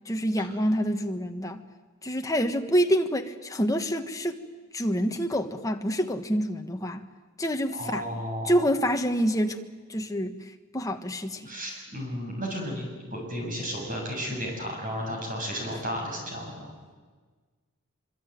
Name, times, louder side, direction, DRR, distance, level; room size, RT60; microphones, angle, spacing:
voice 1, 0.1-1.6 2.0-4.4 4.7-7.0 7.4-8.1 8.4-9.6 9.9-10.4 10.7-11.5, equal, 15° left, 5 dB, 1.4 m, -27 dB
voice 2, 7.7-8.5 11.5-16.7, equal, 40° right, 1 dB, 7.6 m, -33 dB
25.0 x 24.5 x 9.3 m, 1.4 s
head